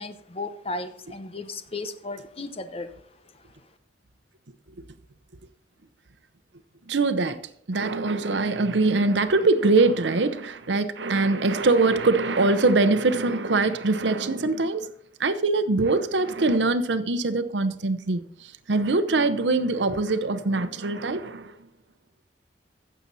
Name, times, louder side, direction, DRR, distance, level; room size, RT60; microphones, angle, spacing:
voice 1, 0.0-2.9, left 2 dB, 35° left, 0.9 m, -35 dB
voice 2, 6.9-7.4 7.7-14.9 15.2-21.5, right 3 dB, 80° right, 0.8 m, -23 dB
15.5 x 6.9 x 4.1 m
head